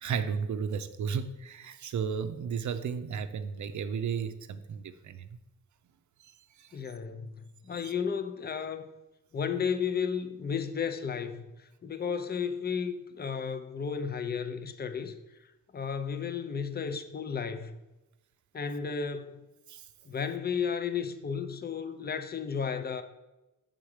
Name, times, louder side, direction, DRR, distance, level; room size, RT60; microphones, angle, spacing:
voice 1, 0.0-5.3 6.6-6.8 7.8-7.9 19.7-19.9, right 6 dB, 60° right, 0.5 m, -34 dB
voice 2, 6.7-8.9 9.3-15.2 15.7-17.8 18.5-19.5 20.0-23.0, left 6 dB, 30° left, 0.5 m, -33 dB
7.1 x 3.8 x 4.8 m
wide cardioid pair, 130°, 34 cm